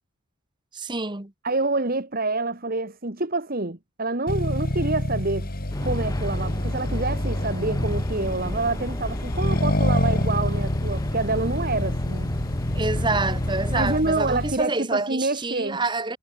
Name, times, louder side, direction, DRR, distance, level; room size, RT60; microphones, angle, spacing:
voice 1, 0.7-1.3 12.7-16.2, right 3 dB, 20° right, 1.2 m, -27 dB
voice 2, 1.4-5.5 5.8-12.3 13.7-15.8, right 2 dB, 45° right, 1.8 m, -27 dB
Accelerating revving vroom, 4.3-14.6, left 1 dB, 45° left, 2.3 m, -27 dB
sound 1, 5.7-14.0, left 1 dB, 15° left, 1.1 m, -32 dB
head